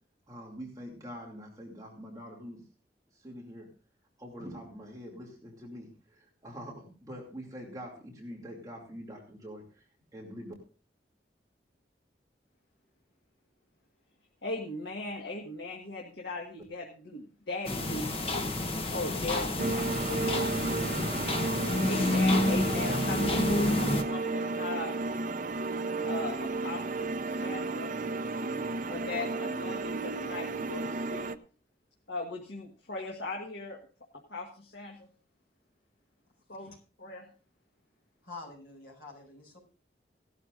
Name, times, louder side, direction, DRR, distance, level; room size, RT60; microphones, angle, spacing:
voice 1, 0.3-2.6 3.2-3.7 4.2-9.8 10.1-10.5, equal, 20° right, -2 dB, 2.7 m, -44 dB
voice 2, 14.4-18.1 18.9-20.4 21.5-24.9 26.0-27.9 28.9-31.2 32.1-33.8 34.3-35.1 36.5-36.7 37.0-37.3, left 2 dB, 80° left, 0 dB, 1.6 m, -38 dB
sound 1, 17.6-24.0, left 1 dB, 35° left, 1.1 m, -29 dB
sound 2, 19.6-31.3, right 3 dB, 50° right, 0.6 m, -33 dB
voice 3, 38.2-39.6, left 3 dB, 55° left, -2 dB, 6.0 m, -47 dB
17.5 x 12.0 x 2.5 m, 0.38 s
head